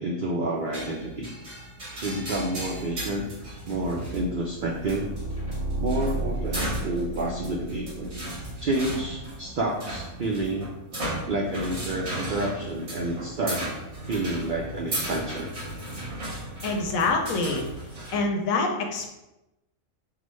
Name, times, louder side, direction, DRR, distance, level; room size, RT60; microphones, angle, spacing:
voice 1, 0.0-1.3 2.0-3.3 3.7-5.1 5.8-8.2 8.6-10.7 11.3-13.7 14.0-15.5, right 2 dB, 75° right, -1 dB, 0.4 m, -29 dB
sound 1, 0.7-18.2, right 1 dB, 55° right, 1.8 m, -36 dB
sound 2, 4.4-9.3, right 2 dB, 25° right, 1.3 m, -33 dB
voice 2, 16.6-17.7 18.1-19.1, left 3 dB, 85° left, 2 dB, 1.1 m, -25 dB
5.8 x 2.1 x 3.1 m, 0.95 s
omnidirectional pair, 1.4 m